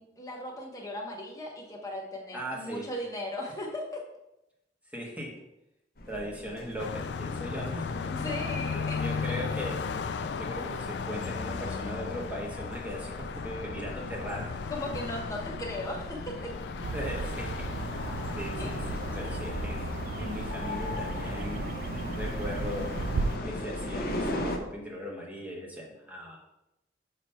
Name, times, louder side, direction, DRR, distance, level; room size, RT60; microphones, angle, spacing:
voice 1, 0.0-4.0 8.0-9.0 9.3-9.4 14.5-16.5 18.6-18.7, left 1 dB, 20° left, -1 dB, 1.2 m, -37 dB
voice 2, 2.3-2.9 4.9-5.3 6.1-8.3 8.9-9.8 10.4-14.5 16.9-18.0 18.3-21.7 22.2-22.9 23.4-26.4, equal, 10° right, -3 dB, 1.4 m, -38 dB
sound 1, 6.0-24.6, left 1 dB, 55° left, 0.8 m, -40 dB
Car passing by, 6.8-24.0, left 5 dB, 70° left, 0.4 m, -36 dB
sound 2, 16.8-23.4, right 4 dB, 50° right, 0.3 m, -36 dB
6.7 x 3.1 x 5.6 m, 0.87 s
head